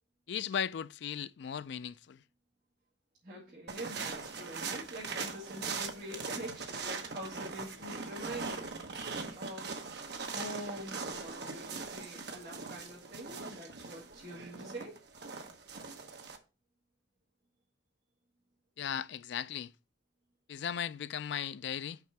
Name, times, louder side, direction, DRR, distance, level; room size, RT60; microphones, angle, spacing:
voice 1, 0.3-2.2 18.8-19.7 20.5-22.0, left 8 dB, 65° left, 0.3 m, -37 dB
voice 2, 3.2-8.7 9.3-9.8 10.3-15.0, equal, 45° right, 2.2 m, -45 dB
sound 1, 3.7-16.4, right 4 dB, 60° right, 1.0 m, -41 dB
6.0 x 4.4 x 5.9 m
head